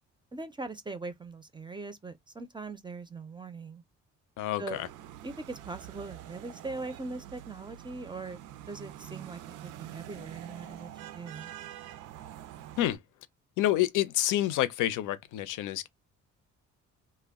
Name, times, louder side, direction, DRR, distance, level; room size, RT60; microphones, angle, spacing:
voice 1, 0.3-3.8 4.6-4.8 5.2-8.4 8.7-11.5, right 3 dB, 15° right, 0.5 m, -41 dB
voice 2, 4.4-4.9 12.8-13.0 13.6-15.9, left 14 dB, 85° left, 0.5 m, -28 dB
sound 1, 4.7-13.0, right 12 dB, 90° right, 0.5 m, -46 dB
2.2 x 2.1 x 3.5 m
cardioid pair, 90°, 30 cm